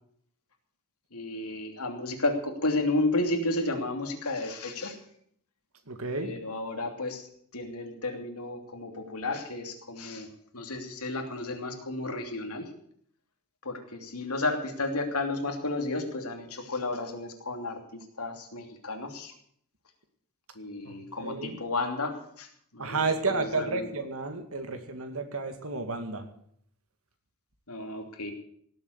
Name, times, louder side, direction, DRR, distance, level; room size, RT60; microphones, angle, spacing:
voice 1, 1.1-5.0 6.2-10.3 10.5-12.7 13.6-19.3 20.5-23.0 23.3-23.9 27.7-28.3, left 2 dB, 85° left, 4 dB, 2.9 m, -32 dB
voice 2, 5.9-6.3 20.9-21.6 22.8-26.2, right 3 dB, 70° right, 7 dB, 2.3 m, -31 dB
18.0 x 8.2 x 8.1 m, 0.64 s
head